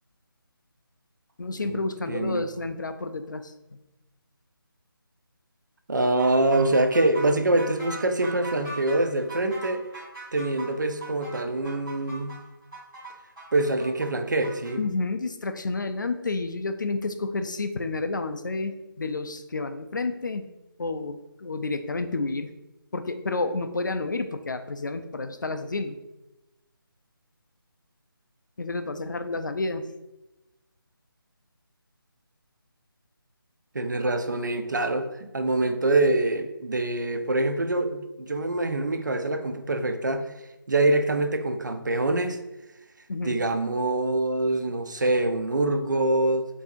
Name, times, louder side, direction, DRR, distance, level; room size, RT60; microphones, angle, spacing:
voice 1, 1.4-3.8 14.8-20.4 20.8-22.5 22.9-26.0 28.6-29.8 43.1-43.4, left 3 dB, 55° left, 9 dB, 0.4 m, -30 dB
voice 2, 2.1-2.5 5.9-9.8 10.3-12.4 13.5-14.8 33.7-40.3 40.7-42.4 43.2-46.5, right 2 dB, 55° right, 7 dB, 0.5 m, -25 dB
sound 1, 6.2-14.7, right 2 dB, 5° right, 1.4 m, -40 dB
6.8 x 2.7 x 2.5 m, 0.97 s
figure-of-eight pair, 175°, 12 cm